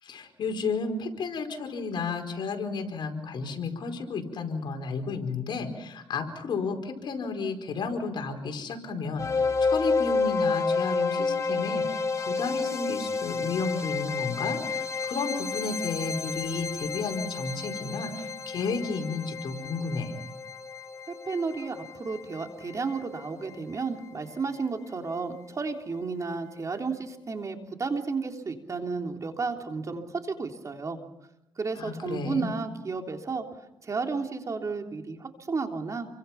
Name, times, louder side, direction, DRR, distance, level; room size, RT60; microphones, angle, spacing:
voice 1, 0.0-20.2 31.8-32.6, left 4 dB, 65° left, 4 dB, 4.6 m, -32 dB
sound 1, 9.2-24.2, left 4 dB, 35° left, 2.8 m, -31 dB
voice 2, 21.1-31.0 31.6-33.4 33.8-36.1, right 4 dB, 40° right, 4 dB, 3.4 m, -32 dB
29.0 x 24.0 x 5.9 m, 0.85 s
cardioid pair, 85°, 8 cm